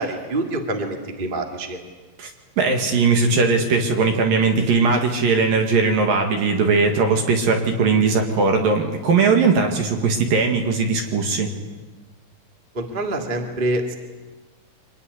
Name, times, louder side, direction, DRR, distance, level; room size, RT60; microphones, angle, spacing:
voice 1, 0.0-1.8 12.7-13.9, right 2 dB, 30° right, 3 dB, 0.9 m, -26 dB
voice 2, 2.6-11.5, right 4 dB, 55° right, 4 dB, 3.1 m, -19 dB
25.0 x 19.5 x 9.8 m, 1.3 s
omnidirectional pair, 5.8 m